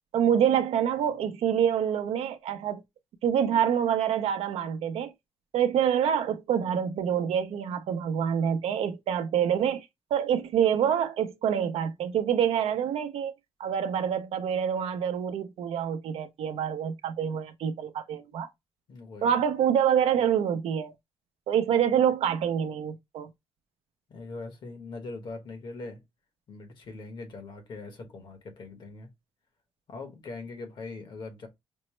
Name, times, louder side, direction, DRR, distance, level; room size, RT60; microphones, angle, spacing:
voice 1, 0.1-2.8 3.2-5.1 5.5-9.9 10.1-13.3 13.6-18.5 19.2-20.9 21.5-23.3, right 8 dB, 85° right, 0.5 m, -26 dB
voice 2, 18.9-19.3 24.1-26.0 26.5-29.1 29.9-31.5, left 3 dB, 50° left, 1.1 m, -41 dB
5.2 x 2.0 x 3.0 m
wide cardioid pair, 180°, 10 cm